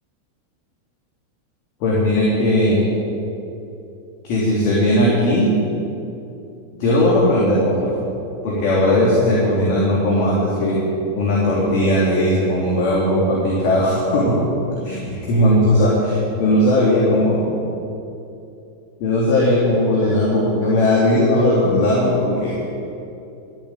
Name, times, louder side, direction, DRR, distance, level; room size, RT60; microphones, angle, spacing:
voice 1, 1.8-2.9 4.2-5.5 6.8-7.9 8.4-10.8 11.1-14.5 14.8-17.5 19.0-22.5, left 1 dB, 45° left, -6 dB, 3.1 m, -17 dB
13.5 x 7.5 x 8.9 m, 2.8 s
figure-of-eight pair, 90°, 0 cm